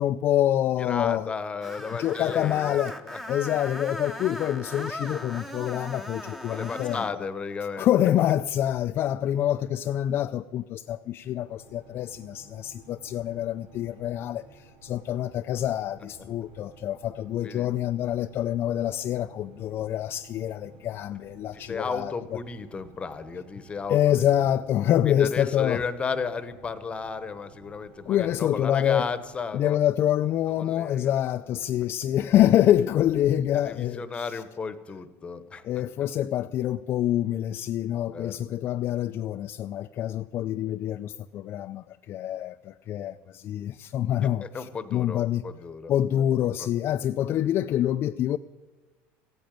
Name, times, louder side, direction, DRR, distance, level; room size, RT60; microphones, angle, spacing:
voice 1, 0.0-1.4 1.9-3.0 3.3-7.3 7.8-22.4 23.9-25.8 28.1-29.1 29.5-34.4 35.6-45.5 45.9-48.4, left 11 dB, 40° left, 0.4 m, -26 dB
voice 2, 0.8-2.8 3.0-3.2 6.5-7.9 17.4-17.7 21.5-24.4 25.0-29.8 30.6-31.1 33.6-35.6 38.1-38.4 44.4-45.9 46.6-46.7, left 5 dB, 20° left, 1.0 m, -34 dB
Screech, 1.6-7.2, left 1 dB, 5° right, 0.9 m, -38 dB
sound 1, 11.4-29.4, right 3 dB, 90° right, 3.8 m, -54 dB
15.5 x 8.8 x 9.2 m
cardioid pair, 140°, 6 cm